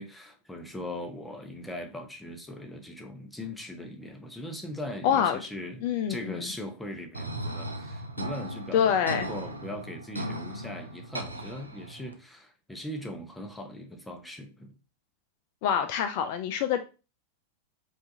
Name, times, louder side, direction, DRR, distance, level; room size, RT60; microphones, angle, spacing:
voice 1, 0.0-14.7, left 1 dB, 5° left, 0.7 m, -40 dB
voice 2, 5.0-5.4 5.8-6.4 8.7-9.3 15.6-16.8, left 8 dB, 45° left, 0.3 m, -26 dB
sound 1, 7.1-12.1, right 1 dB, 80° right, 0.5 m, -37 dB
4.5 x 2.5 x 2.7 m
figure-of-eight pair, 90°, 0 cm